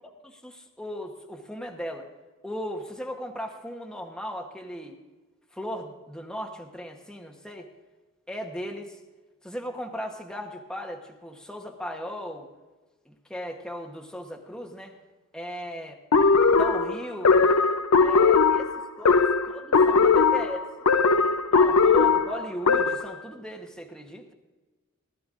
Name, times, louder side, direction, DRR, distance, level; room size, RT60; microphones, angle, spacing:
voice 1, 0.2-2.1 2.4-5.0 5.5-7.7 8.3-9.0 9.4-12.5 13.1-14.9 15.3-16.0 16.6-17.5 18.0-18.7 19.0-20.6 21.5-24.3, equal, 5° left, 1 dB, 1.0 m, -37 dB
sound 1, 16.1-23.2, left 4 dB, 85° left, 0.7 m, -20 dB
19.0 x 12.5 x 2.5 m, 1.3 s
head